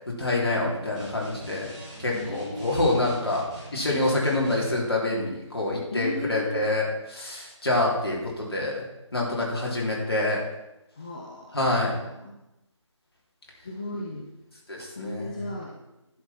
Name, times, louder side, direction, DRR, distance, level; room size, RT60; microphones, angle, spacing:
voice 1, 0.2-1.7 2.0-3.4 3.7-8.8 9.1-10.4 11.5-11.9 14.7-15.3, left 2 dB, 55° left, -3 dB, 3.3 m, -26 dB
sound 1, 0.9-4.8, right 1 dB, 20° right, 4.5 m, -43 dB
voice 2, 2.1-3.0 5.9-6.6 10.9-12.3 13.6-14.3 15.0-15.8, left 2 dB, 15° left, -1 dB, 0.5 m, -36 dB
11.0 x 8.0 x 4.3 m, 0.91 s
figure-of-eight pair, 155°, 16 cm